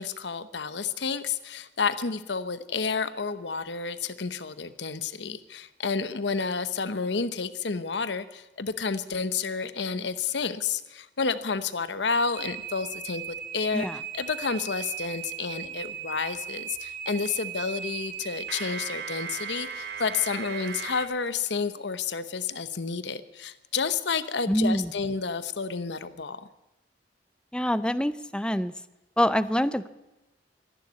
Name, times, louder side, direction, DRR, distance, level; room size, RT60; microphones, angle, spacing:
voice 1, 0.0-13.9 14.1-26.5, left 5 dB, 75° left, 13 dB, 1.0 m, -30 dB
sound 1, 12.3-21.1, right 8 dB, 65° right, 2.2 m, -37 dB
voice 2, 24.5-24.9 27.5-28.7 29.2-29.9, equal, 5° left, 14 dB, 0.5 m, -25 dB
14.0 x 11.5 x 9.3 m, 1.0 s
head